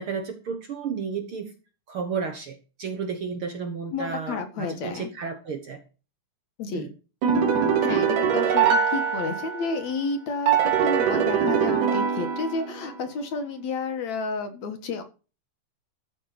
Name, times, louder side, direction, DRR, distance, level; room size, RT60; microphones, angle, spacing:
voice 1, 0.0-1.5 1.9-5.8 6.7-6.9, right 5 dB, 55° right, 5 dB, 1.7 m, -32 dB
voice 2, 3.9-5.1 6.6-6.9 7.8-15.0, left 4 dB, 65° left, 6 dB, 2.8 m, -31 dB
sound 1, 7.2-9.8 10.5-12.9, right 7 dB, 90° right, 3.6 m, -23 dB
13.5 x 5.5 x 5.9 m, 0.34 s
omnidirectional pair, 3.6 m